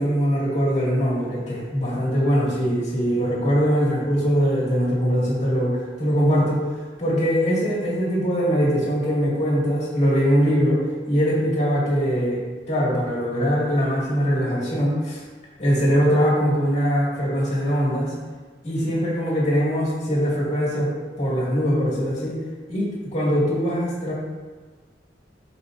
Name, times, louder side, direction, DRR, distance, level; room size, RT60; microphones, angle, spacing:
voice 1, 0.0-6.6 7.0-15.2 15.6-18.1 18.6-20.9 21.2-22.4 22.7-24.1, equal, 40° left, -5 dB, 2.3 m, -22 dB
11.5 x 4.9 x 2.7 m, 1.4 s
head